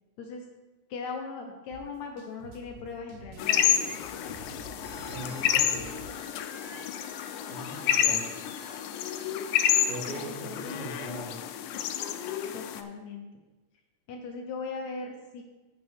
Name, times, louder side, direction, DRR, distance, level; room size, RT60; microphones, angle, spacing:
voice 1, 0.9-3.7 10.1-11.2 12.5-13.3 14.1-15.4, left 4 dB, 70° left, 2 dB, 2.0 m, -39 dB
sound 1, 1.7-6.1, right 2 dB, 70° right, 2.4 m, -48 dB
sound 2, 3.4-12.8, left 10 dB, 85° left, 2.2 m, -29 dB
Telephone, 4.8-10.6, left 1 dB, 35° left, 1.9 m, -51 dB
voice 2, 5.1-5.9 7.5-8.4 9.9-11.4, right 1 dB, 50° right, -3 dB, 2.5 m, -39 dB
14.0 x 5.6 x 3.5 m, 1.1 s
omnidirectional pair, 3.6 m